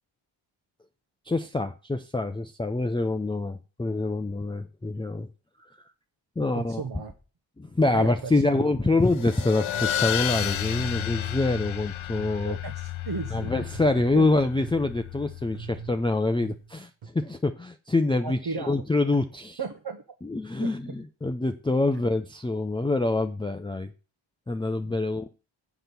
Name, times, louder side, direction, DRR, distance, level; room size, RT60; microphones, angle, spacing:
voice 1, 1.3-5.3 6.4-6.8 7.6-9.7 10.0-12.6 13.3-19.6 20.2-23.9 24.5-25.3, left 2 dB, 10° left, 7 dB, 0.5 m, -26 dB
voice 2, 6.5-7.1 7.9-8.6 12.4-13.6 14.1-14.3 18.2-18.8 19.6-20.0 20.6-20.7, right 4 dB, 50° right, 4 dB, 1.1 m, -35 dB
sound 1, 8.5-12.6 13.4-15.0 15.5-17.1, right 6 dB, 90° right, 1.7 m, -43 dB
sound 2, 9.0-16.0, left 11 dB, 70° left, 0.8 m, -32 dB
7.7 x 6.0 x 6.8 m, 0.34 s
wide cardioid pair, 100°, 49 cm